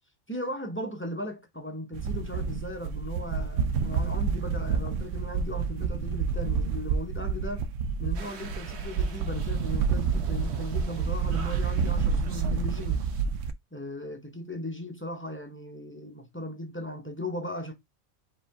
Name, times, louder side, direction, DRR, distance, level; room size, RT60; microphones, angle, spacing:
voice 1, 0.3-7.7 8.0-13.0 13.7-17.7, left 1 dB, 10° left, 0.8 m, -37 dB
sound 1, 1.9-13.5, right 5 dB, 85° right, 1.0 m, -29 dB
sound 2, 8.1-13.2, right 6 dB, 60° right, 1.2 m, -46 dB
5.0 x 3.2 x 3.4 m
omnidirectional pair, 1.3 m